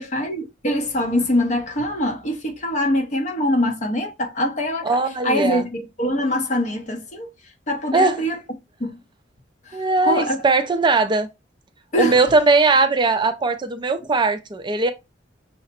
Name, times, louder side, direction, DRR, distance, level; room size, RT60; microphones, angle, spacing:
voice 1, 0.0-4.9 5.2-7.3 7.7-8.4 8.8-9.0 9.7-10.4 11.9-12.2, left 1 dB, 40° left, 0.9 m, -23 dB
voice 2, 4.8-5.7 7.9-8.2 9.7-11.3 12.0-14.9, right 3 dB, 25° right, 0.4 m, -19 dB
5.6 x 2.1 x 4.1 m
head